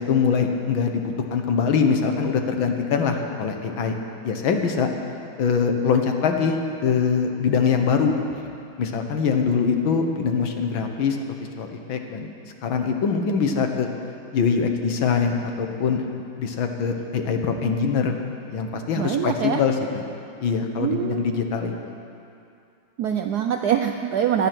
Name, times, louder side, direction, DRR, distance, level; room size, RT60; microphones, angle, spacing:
voice 1, 0.0-3.9 4.2-4.9 5.4-8.1 8.8-11.2 11.6-12.3 12.6-13.9 14.3-16.0 16.4-18.2 18.5-20.0 20.4-21.9, left 6 dB, 70° left, 4 dB, 1.9 m, -23 dB
voice 2, 19.0-19.6 20.8-21.4 23.0-24.5, right 9 dB, 75° right, 5 dB, 0.9 m, -24 dB
16.5 x 11.5 x 6.1 m, 2.6 s
omnidirectional pair, 2.3 m